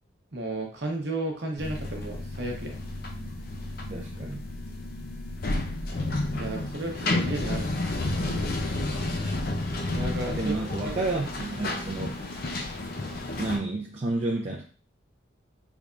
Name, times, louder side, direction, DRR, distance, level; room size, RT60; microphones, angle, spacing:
voice 1, 0.3-2.8 6.3-8.0 9.9-10.9, right 2 dB, 55° right, 1 dB, 0.8 m, -33 dB
sound 1, 1.6-13.6, left 2 dB, 50° left, 0.5 m, -31 dB
voice 2, 3.9-4.5 10.3-12.2 13.4-14.6, right 2 dB, 35° right, -2 dB, 0.4 m, -30 dB
3.5 x 3.2 x 2.5 m, 0.39 s
head